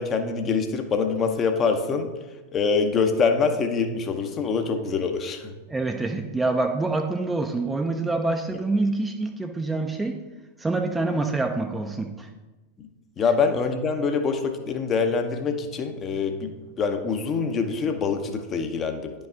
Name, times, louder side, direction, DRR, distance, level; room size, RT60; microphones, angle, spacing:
voice 1, 0.0-2.1 2.5-5.5 12.8-12.9 13.2-16.5 16.8-19.1, left 5 dB, 25° left, 6 dB, 0.7 m, -25 dB
voice 2, 5.7-10.2 10.6-12.3, right 2 dB, 10° right, 4 dB, 0.5 m, -26 dB
10.0 x 5.4 x 3.5 m, 1.2 s
figure-of-eight pair, 90°, 0 cm